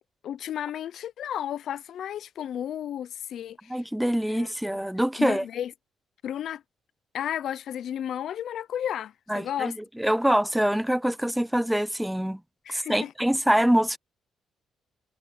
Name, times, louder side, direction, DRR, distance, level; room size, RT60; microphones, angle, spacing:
voice 1, 0.2-3.7 4.3-4.5 5.2-5.7 6.2-6.6 7.1-9.7 12.7-13.1, left 10 dB, 70° left, 0.8 m, -33 dB
voice 2, 3.7-5.4 9.3-12.4 12.7-14.0, equal, 5° right, 0.3 m, -25 dB
cardioid pair, 90°, 0 cm